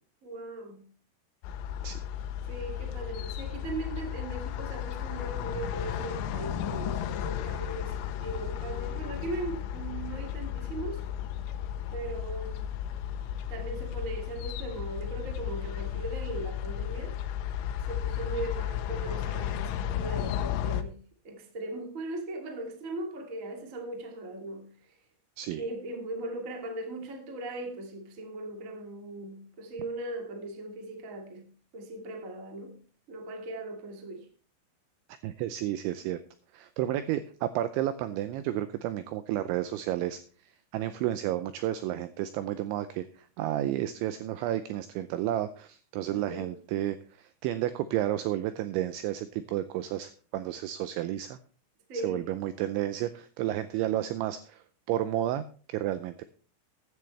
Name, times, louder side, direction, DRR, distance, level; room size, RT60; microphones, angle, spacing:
voice 1, 0.2-0.8 2.5-11.0 11.9-12.7 13.5-17.2 17.9-21.0 21.2-24.7 25.6-31.5 31.7-32.8 33.1-34.3 46.1-46.5 51.9-52.2, right 2 dB, 40° right, 1.1 m, -38 dB
sound 1, 1.4-20.8, left 10 dB, 80° left, 3.3 m, -34 dB
voice 2, 35.2-36.2 36.5-51.4 52.0-56.2, right 13 dB, 85° right, 2.6 m, -32 dB
15.0 x 10.5 x 3.3 m
omnidirectional pair, 6.0 m